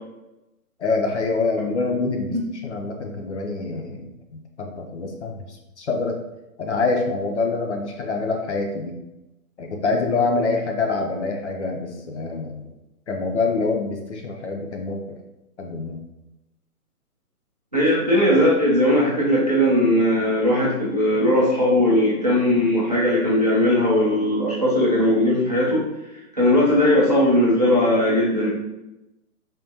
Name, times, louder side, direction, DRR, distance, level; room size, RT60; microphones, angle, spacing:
voice 1, 0.8-6.2 6.6-8.9 9.6-12.6 13.1-15.2 15.6-16.0, left 3 dB, 50° left, 2 dB, 0.5 m, -26 dB
voice 2, 17.7-25.8 26.3-28.5, left 1 dB, 30° right, -7 dB, 0.4 m, -19 dB
3.5 x 2.2 x 2.7 m, 0.96 s
hypercardioid pair, 160°, 45 cm